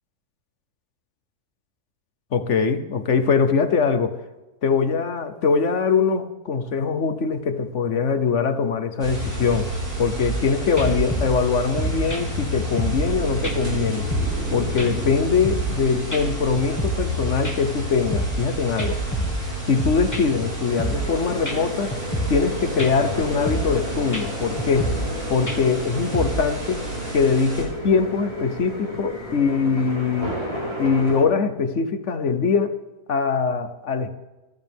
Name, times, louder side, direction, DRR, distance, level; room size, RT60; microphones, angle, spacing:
voice 1, 2.3-4.2 4.6-9.7 10.0-14.1 14.5-19.0 19.7-22.0 22.3-24.9 25.3-26.8 27.1-30.4 30.8-32.8 33.1-34.1, left 5 dB, 55° left, 10 dB, 1.2 m, -22 dB
sound 1, 9.0-27.6, right 1 dB, 75° right, 6.1 m, -30 dB
sound 2, 10.3-10.5 10.8-13.1 13.4-13.6 13.9-14.5 14.8-15.8 16.1-16.2 16.6-17.2 17.4-18.5 18.8-20.5 20.8-21.2 21.5-21.6 21.9-22.5 22.8-23.1 23.5-23.8 24.1-24.2 24.6-25.2 25.5-26.5, right 1 dB, 10° left, 1.6 m, -28 dB
sound 3, 20.6-31.2, equal, 20° right, 4.4 m, -33 dB
25.0 x 13.0 x 3.6 m, 1.1 s
omnidirectional pair, 1.6 m